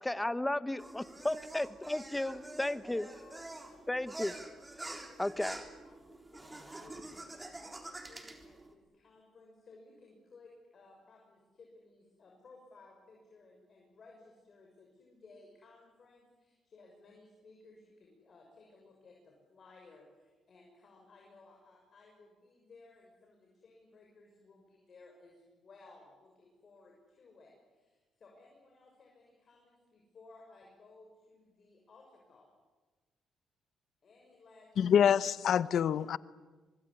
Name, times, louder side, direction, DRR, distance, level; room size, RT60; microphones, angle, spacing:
voice 1, 0.0-3.1 3.9-4.3 5.2-5.6, left 1 dB, 10° left, 1.1 m, -34 dB
sound 1, 0.8-8.7, right 2 dB, 15° right, 3.8 m, -47 dB
voice 2, 2.0-2.7 2.9-4.4 5.1-32.5 34.0-34.9, left 3 dB, 45° left, 6.4 m, -59 dB
voice 3, 34.8-36.2, left 8 dB, 65° left, 0.9 m, -26 dB
25.0 x 21.5 x 9.9 m
cardioid pair, 90°, 0 cm